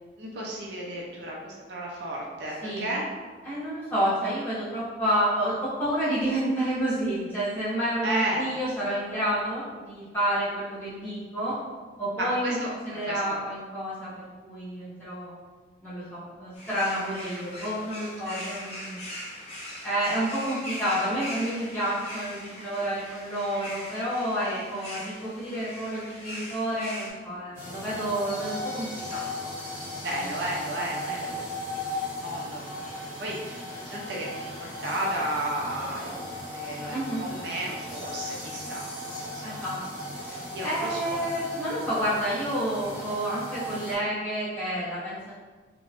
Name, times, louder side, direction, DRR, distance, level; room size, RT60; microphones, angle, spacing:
voice 1, 0.2-3.1 8.0-8.6 12.2-13.4 18.2-18.4 24.4-24.7 30.0-31.4 31.7-39.8 40.5-41.3, right 1 dB, 60° right, -3 dB, 0.4 m, -34 dB
voice 2, 3.4-11.6 12.0-12.6 12.8-15.3 15.8-19.0 19.8-29.5 29.8-30.3 36.9-37.3 39.4-39.8 40.2-45.3, right 1 dB, 10° left, -13 dB, 1.3 m, -29 dB
sound 1, 16.5-27.1, left 1 dB, 35° left, 0.6 m, -40 dB
sound 2, 27.5-43.9, left 1 dB, 15° right, 0.8 m, -37 dB
2.9 x 2.1 x 2.9 m, 1.4 s
head